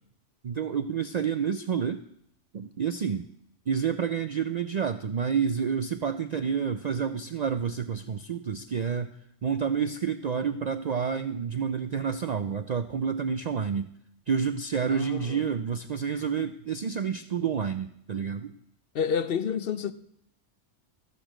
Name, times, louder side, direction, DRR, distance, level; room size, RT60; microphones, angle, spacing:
voice 1, 0.4-2.0 2.5-3.3 3.7-9.2 9.4-13.9 14.3-18.5, right 7 dB, 60° right, 0.4 m, -29 dB
voice 2, 14.9-15.4 18.9-19.9, left 7 dB, 60° left, 0.8 m, -29 dB
14.0 x 5.1 x 7.4 m
omnidirectional pair, 1.2 m